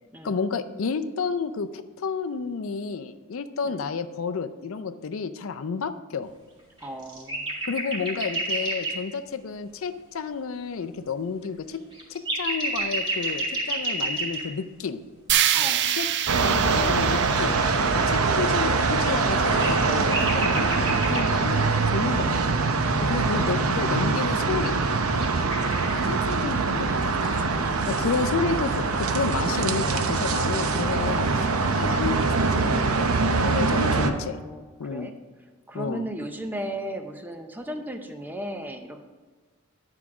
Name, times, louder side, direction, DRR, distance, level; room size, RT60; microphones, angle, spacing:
voice 1, 0.2-6.3 7.7-11.8 12.1-15.0 15.9-16.1 16.5-17.6 18.1-22.6 23.0-24.8 26.0-27.5 27.9-34.4 34.8-35.1 35.7-36.1, left 5 dB, 65° left, 11 dB, 0.5 m, -31 dB
voice 2, 6.8-7.5 15.5-15.9 23.1-24.2 27.5-28.4 33.9-35.1 35.7-39.0, right 1 dB, 10° right, 5 dB, 0.6 m, -37 dB
sound 1, 6.8-8.9 11.4-11.5 11.7-14.4 18.9-21.4 25.0-26.0, right 2 dB, 25° right, 2.2 m, -29 dB
sound 2, 15.3-19.4, right 10 dB, 55° right, 0.4 m, -27 dB
sound 3, 16.3-34.1, right 4 dB, 90° right, 0.7 m, -23 dB
10.5 x 4.9 x 5.9 m, 1.3 s
head